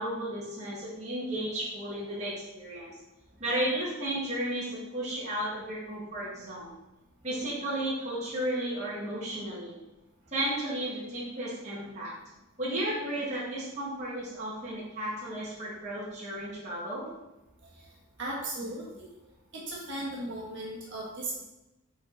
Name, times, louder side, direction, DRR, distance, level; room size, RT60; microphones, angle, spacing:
voice 1, 0.0-2.9 3.4-6.7 7.2-9.8 10.3-12.2 12.6-17.1, right 1 dB, 35° right, -8 dB, 1.6 m, -33 dB
voice 2, 18.2-19.0 19.7-21.4, right 1 dB, 55° right, -4 dB, 1.4 m, -36 dB
5.7 x 4.5 x 3.9 m, 0.94 s
head